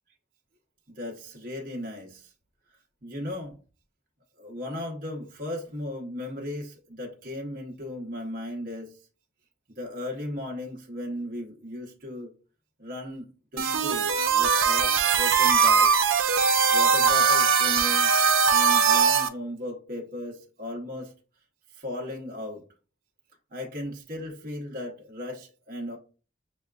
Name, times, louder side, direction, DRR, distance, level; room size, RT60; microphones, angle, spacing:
voice 1, 1.0-2.3 3.0-3.6 4.4-8.9 9.8-12.3 12.8-18.1 18.5-21.1 21.7-22.6 23.5-26.0, left 1 dB, 45° right, 0.9 m, -36 dB
sound 1, 13.6-19.3, right 6 dB, 85° right, 0.6 m, -21 dB
6.8 x 2.3 x 2.4 m
head